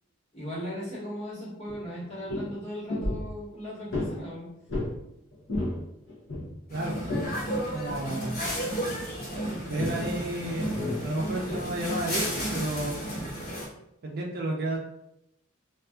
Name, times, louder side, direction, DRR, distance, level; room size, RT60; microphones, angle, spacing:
voice 1, 0.3-4.5, equal, 35° left, -9 dB, 1.2 m, -37 dB
sound 1, 1.7-1.8 2.0-2.5 2.9-3.3 3.9-4.2 4.7-5.0 5.3-5.8 6.1-7.3 7.9-8.1 9.8-10.1 10.6-11.7 12.3-12.4, left 1 dB, 70° left, 0.7 m, -32 dB
sound 2, 6.7-13.7, right 1 dB, 50° left, 1.1 m, -33 dB
voice 2, 6.7-7.0 7.7-8.4 9.6-12.2 12.5-13.1 14.0-14.8, right 1 dB, 50° right, 0 dB, 0.4 m, -32 dB
2.6 x 2.4 x 2.2 m, 0.83 s
head